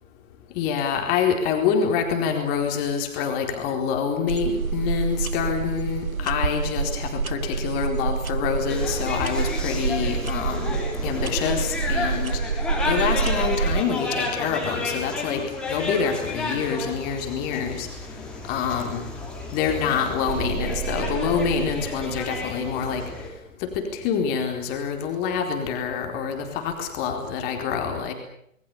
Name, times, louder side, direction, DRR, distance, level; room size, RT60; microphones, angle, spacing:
voice 1, 0.5-10.8 11.0-12.4 12.8-17.9 18.5-19.0 19.5-23.0 23.6-28.1, left 6 dB, 20° left, 3 dB, 4.2 m, -26 dB
sound 1, 4.3-13.8, right 5 dB, 80° right, 1.2 m, -27 dB
sound 2, 8.7-23.3, left 3 dB, ahead, 4.9 m, -32 dB
sound 3, 20.3-23.0, right 10 dB, 30° right, 3.2 m, -33 dB
29.5 x 21.0 x 7.0 m, 0.72 s
figure-of-eight pair, 135°, 41 cm